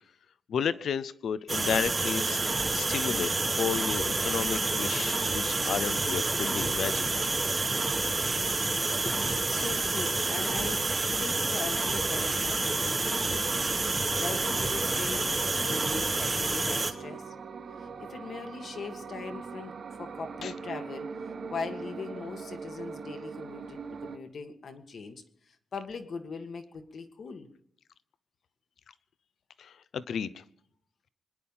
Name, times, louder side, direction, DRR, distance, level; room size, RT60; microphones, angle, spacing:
voice 1, 0.5-2.4 2.7-7.3 20.4-20.5 29.6-30.4, left 7 dB, 65° left, 16 dB, 0.7 m, -32 dB
sound 1, 1.5-16.9, right 3 dB, 20° right, 1.1 m, -28 dB
voice 2, 9.5-10.9 11.2-13.5 14.1-17.3 17.8-21.1 21.5-27.5, left 4 dB, 45° left, 7 dB, 1.7 m, -40 dB
sound 2, 13.4-24.2, right 5 dB, 50° right, 1.3 m, -41 dB
25.0 x 10.5 x 5.6 m, 0.68 s
wide cardioid pair, 170°, 0 cm